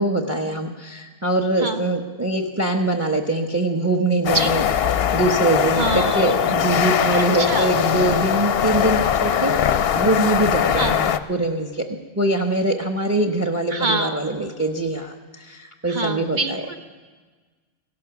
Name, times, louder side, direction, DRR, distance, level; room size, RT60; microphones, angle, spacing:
voice 1, 0.0-4.7 4.9-11.9 12.2-16.6, right 2 dB, 15° right, 4 dB, 0.7 m, -23 dB
sound 1, 4.2-11.2, left 9 dB, 60° left, 0.7 m, -21 dB
voice 2, 5.8-6.3 7.1-7.7 10.8-10.9 13.7-14.2 15.9-16.8, right 3 dB, 45° right, 5 dB, 0.9 m, -25 dB
17.0 x 11.5 x 5.9 m, 1.4 s
omnidirectional pair, 1.2 m